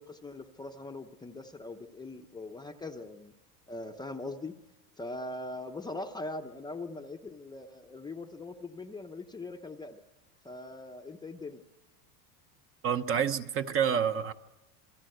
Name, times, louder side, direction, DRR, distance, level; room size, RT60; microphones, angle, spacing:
voice 1, 0.0-3.3 3.7-4.5 5.0-10.0 10.4-11.6, left 2 dB, 10° left, 4 dB, 0.8 m, -41 dB
voice 2, 12.8-14.3, right 8 dB, 30° right, 9 dB, 1.0 m, -28 dB
28.5 x 22.0 x 7.9 m, 1.1 s
cardioid pair, 160°, 44 cm